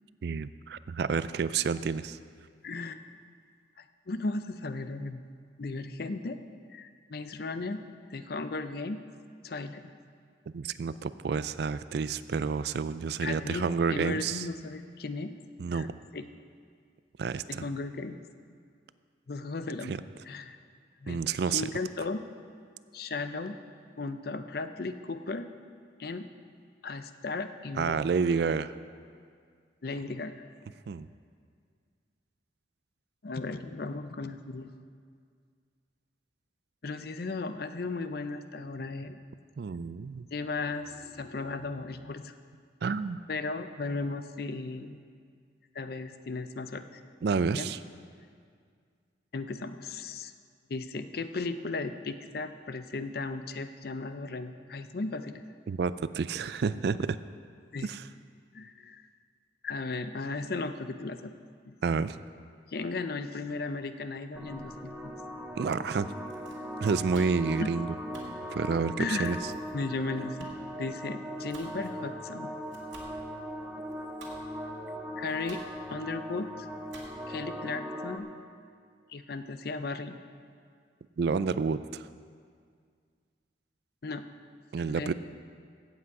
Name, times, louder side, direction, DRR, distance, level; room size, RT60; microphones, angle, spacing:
voice 1, 0.2-2.2 10.5-14.5 15.6-15.9 17.2-17.6 19.8-20.0 21.1-21.7 27.8-28.7 30.9-31.1 39.6-40.3 42.8-43.2 47.2-47.8 55.7-57.2 57.8-58.0 61.8-62.2 65.6-66.1 66.8-67.9 68.5-69.4 81.2-82.1 84.7-85.1, right 5 dB, 55° right, 15 dB, 0.3 m, -29 dB
voice 2, 2.6-3.0 3.8-5.3 5.6-6.4 6.7-7.8 8.1-9.0 9.4-9.9 13.2-15.3 15.7-15.9 16.1-16.2 17.5-18.2 19.3-20.0 20.2-20.6 21.0-21.2 21.5-22.2 22.9-23.6 24.0-25.5 26.0-26.3 26.8-28.0 29.8-30.4 33.2-34.7 36.8-39.2 40.3-42.3 43.3-45.0 45.7-47.0 47.6-47.7 49.3-50.3 50.7-55.4 57.7-57.9 58.5-59.1 59.6-61.3 61.7-61.8 62.7-65.1 67.5-67.7 69.0-69.4 69.7-70.5 70.8-72.5 75.2-75.6 75.9-76.7 77.3-78.3 79.1-80.2 84.0-84.2 84.9-85.1, left 3 dB, 55° left, 10 dB, 0.5 m, -36 dB
sound 1, 64.3-78.2, equal, 5° right, 0.7 m, -39 dB
Domestic sounds home sounds, 66.1-77.5, right 2 dB, 80° right, 2.2 m, -53 dB
15.5 x 8.4 x 4.8 m, 2.1 s
head